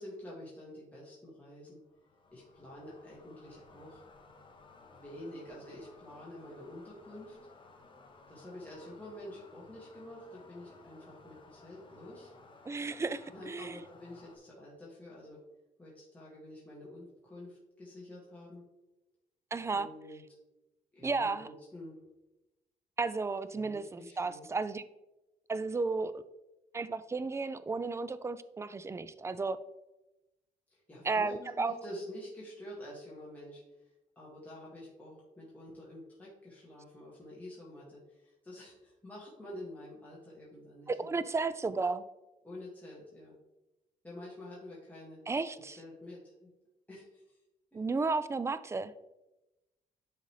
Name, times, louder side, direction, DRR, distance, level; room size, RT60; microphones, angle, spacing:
voice 1, 0.0-1.8 2.3-4.0 4.9-7.4 8.3-12.3 13.3-15.4 15.8-18.6 19.7-20.2 20.9-22.0 23.5-24.5 30.7-33.9 34.2-41.1 42.4-43.3 44.0-45.2 45.7-46.5 46.9-47.4 47.7-47.8, left 1 dB, 10° left, -7 dB, 1.9 m, -48 dB
sound 1, 1.8-14.4, left 3 dB, 35° left, 1.0 m, -58 dB
voice 2, 12.7-13.8 19.5-19.9 21.0-21.5 23.0-24.8 25.5-26.2 26.7-29.6 31.0-31.7 40.9-42.0 45.3-45.8 47.7-48.9, right 4 dB, 20° right, 14 dB, 0.4 m, -33 dB
10.5 x 4.0 x 3.2 m, 0.98 s
cardioid pair, 105°, 15 cm